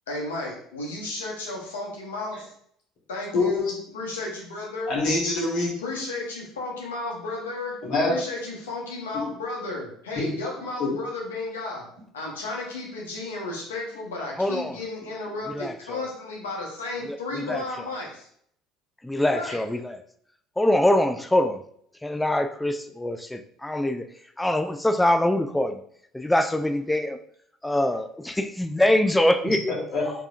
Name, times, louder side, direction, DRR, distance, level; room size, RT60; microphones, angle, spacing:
voice 1, 0.1-2.5 3.1-4.9 5.8-7.8 8.1-11.8 12.1-18.3 19.3-19.6, left 2 dB, 80° left, -2 dB, 0.9 m, -33 dB
voice 2, 3.3-3.7 4.9-5.7 7.8-8.1 10.2-10.3 10.8-10.9 29.7-30.1, left 3 dB, 60° left, -4 dB, 1.4 m, -24 dB
voice 3, 14.4-14.8 15.5-16.1 17.0-17.6 19.0-20.0 20.6-21.6 22.0-24.1 24.4-25.8 26.1-27.2 27.6-29.6, left 1 dB, 10° left, 8 dB, 0.4 m, -24 dB
4.7 x 2.8 x 2.4 m, 0.66 s
hypercardioid pair, 60°, 0 cm